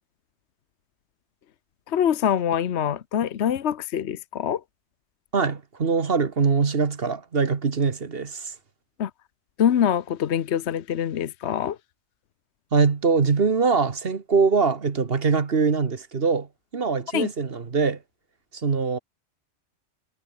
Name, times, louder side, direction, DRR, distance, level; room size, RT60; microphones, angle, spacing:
voice 1, 1.9-4.6 9.0-9.1 9.6-11.8 17.1-17.3, left 9 dB, 65° left, 1.1 m, -24 dB
voice 2, 5.3-8.5 12.7-16.5 16.7-18.0 18.5-19.0, right 5 dB, 50° right, 1.6 m, -23 dB
omnidirectional pair, 1.2 m